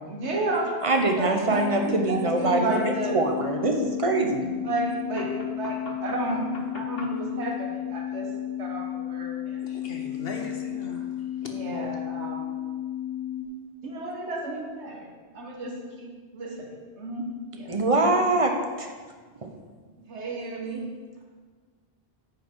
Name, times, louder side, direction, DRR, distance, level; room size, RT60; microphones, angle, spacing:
voice 1, 0.0-0.9 1.2-3.2 4.6-6.4 6.7-8.3 8.6-9.6 11.5-12.5 13.8-15.1 15.3-16.7 17.0-17.7 20.1-20.8, right 2 dB, 85° right, 1 dB, 1.6 m, -32 dB
voice 2, 0.8-2.7 3.1-4.5 17.7-18.5 18.8-18.9 19.4-19.5, right 2 dB, 35° right, 3 dB, 0.8 m, -23 dB
sound 1, 1.5-13.4, left 11 dB, 65° right, 1.9 m, -33 dB
voice 3, 5.2-7.1 9.6-11.2, left 3 dB, 60° left, 2 dB, 1.2 m, -41 dB
9.7 x 5.3 x 4.5 m, 1.5 s
omnidirectional pair, 1.1 m